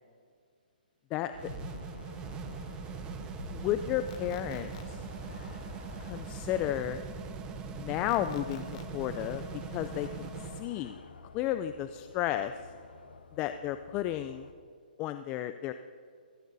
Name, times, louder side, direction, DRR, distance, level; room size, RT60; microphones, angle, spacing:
voice 1, 1.1-1.5 3.5-5.0 6.0-7.0 7.7-8.6 8.9-9.4 9.7-10.3 10.6-11.0 11.3-12.5 13.4-14.5 15.0-15.7, left 12 dB, 20° left, 10 dB, 0.4 m, -32 dB
sound 1, 1.3-14.5, left 4 dB, 80° left, 1.2 m, -51 dB
sound 2, 1.3-10.7, right 5 dB, 15° right, 1.1 m, -41 dB
sound 3, 4.1-4.8 8.1-8.8, left 11 dB, 45° left, 1.0 m, -52 dB
29.0 x 13.5 x 2.7 m, 2.2 s
hypercardioid pair, 145°, 5 cm